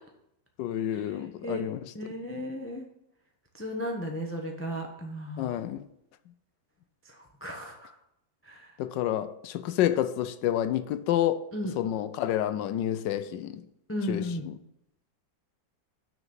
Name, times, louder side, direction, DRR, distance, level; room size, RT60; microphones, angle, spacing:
voice 1, 0.6-1.8 5.4-5.8 8.8-11.5 11.8-13.6 14.1-14.6, left 11 dB, 75° left, 1.2 m, -29 dB
voice 2, 1.9-2.9 3.5-5.5 7.0-7.9 8.4-8.7 11.5-11.7 13.9-14.5, left 1 dB, 15° left, 0.5 m, -35 dB
6.6 x 6.1 x 7.1 m
omnidirectional pair, 2.0 m